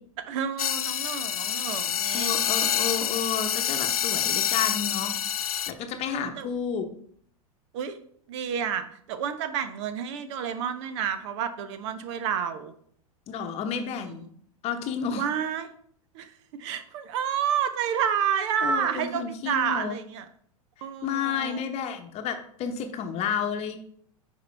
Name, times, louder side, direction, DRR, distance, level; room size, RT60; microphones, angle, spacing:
voice 1, 0.3-2.3 3.0-3.2 6.1-6.5 7.7-8.0 8.3-12.7 13.7-13.9 15.2-15.7 16.1-16.3 16.6-20.3 20.8-21.6, right 8 dB, 50° right, 11 dB, 0.8 m, -30 dB
sound 1, 0.6-5.7, left 9 dB, 75° left, 0.4 m, -27 dB
voice 2, 2.1-5.1 5.7-6.9 13.3-14.3 14.6-15.2 18.6-20.0 21.0-23.8, left 7 dB, 35° left, 6 dB, 1.0 m, -31 dB
9.4 x 4.6 x 3.4 m, 0.63 s
figure-of-eight pair, 95°, 19 cm